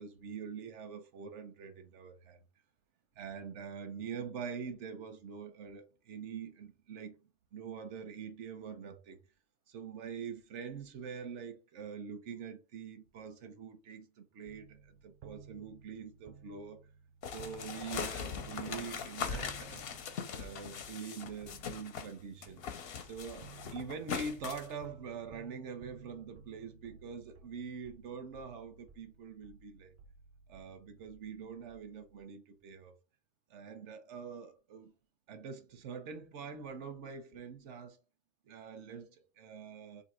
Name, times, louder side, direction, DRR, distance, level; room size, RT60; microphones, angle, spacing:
voice 1, 0.0-2.4 3.2-7.2 7.5-9.2 9.7-16.8 17.3-19.9 20.3-22.6 23.0-29.9 30.5-33.0 33.5-34.9 35.3-38.0 38.5-40.0, right 6 dB, 90° right, 1.0 m, -44 dB
sound 1, 14.5-32.2, right 6 dB, 60° right, 0.6 m, -57 dB
sound 2, 17.2-22.1 22.4-24.7, left 6 dB, 65° left, 0.8 m, -41 dB
2.8 x 2.7 x 4.2 m
omnidirectional pair, 1.2 m